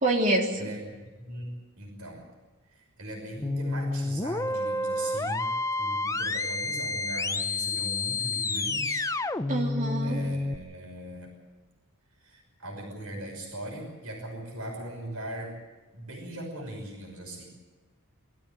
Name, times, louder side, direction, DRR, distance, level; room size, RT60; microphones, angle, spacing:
voice 1, 0.0-0.8 9.5-10.2, right 1 dB, 35° right, -1 dB, 3.3 m, -26 dB
voice 2, 0.6-2.3 2.7-5.5 5.8-9.1 10.0-11.3 12.2-15.5 15.9-17.5, right 1 dB, 70° right, 1 dB, 6.0 m, -39 dB
sound 1, 3.4-10.6, left 2 dB, 15° left, 0.6 m, -29 dB
23.0 x 14.0 x 9.1 m, 1.3 s
head